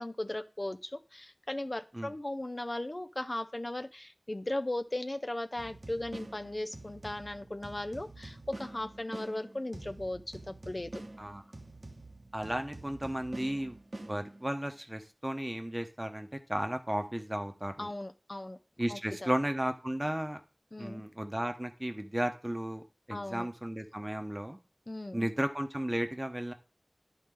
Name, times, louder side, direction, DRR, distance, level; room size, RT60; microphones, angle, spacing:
voice 1, 0.0-10.9 17.8-18.6 18.9-19.3 20.7-21.0 23.1-23.5 24.9-25.3, left 1 dB, 50° left, 8 dB, 0.5 m, -37 dB
sound 1, 5.6-14.7, right 2 dB, 80° right, 0.8 m, -47 dB
voice 2, 12.3-13.8 14.1-17.9 18.8-20.4 20.8-24.6 25.1-26.5, right 1 dB, 20° right, 7 dB, 0.9 m, -34 dB
11.0 x 4.0 x 3.8 m, 0.36 s
wide cardioid pair, 45°, 0 cm